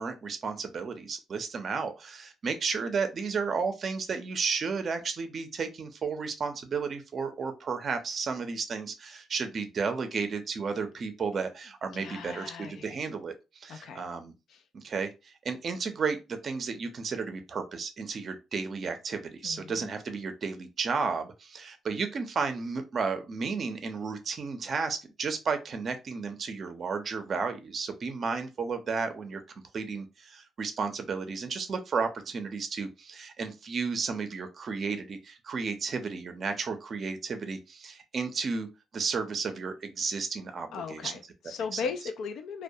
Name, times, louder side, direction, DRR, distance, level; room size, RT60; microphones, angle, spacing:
voice 1, 0.0-14.3 14.7-29.4 29.7-38.7 38.9-41.1 41.7-41.8, right 5 dB, 50° right, 0.5 m, -33 dB
voice 2, 11.9-13.0 13.7-14.0 14.5-14.6 19.4-19.9 40.7-42.6, left 5 dB, 75° left, 0.4 m, -37 dB
2.2 x 2.1 x 2.7 m
cardioid pair, 90°, 0 cm